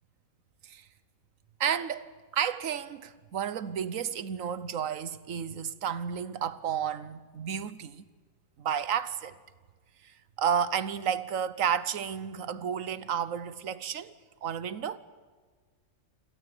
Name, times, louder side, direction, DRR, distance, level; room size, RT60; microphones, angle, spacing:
voice 1, 1.6-8.0 8.6-9.3 10.0-14.1 14.4-15.0, right 8 dB, 75° right, 1.3 m, -32 dB
27.0 x 17.5 x 9.8 m
omnidirectional pair, 1.4 m